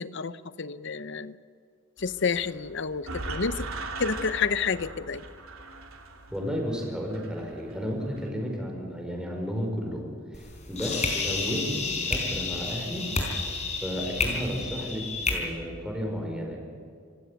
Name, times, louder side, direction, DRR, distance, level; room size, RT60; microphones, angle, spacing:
voice 1, 0.0-1.4 2.0-3.7 4.0-5.2, left 5 dB, 60° left, 15 dB, 0.8 m, -29 dB
sound 1, 2.0-8.3, right 2 dB, 85° right, 2.9 m, -40 dB
voice 2, 6.3-13.0 13.8-16.6, equal, 5° right, 0 dB, 5.1 m, -33 dB
sound 2, 10.3-15.3, left 4 dB, 35° left, 4.5 m, -30 dB
27.0 x 16.0 x 8.3 m, 2.3 s
head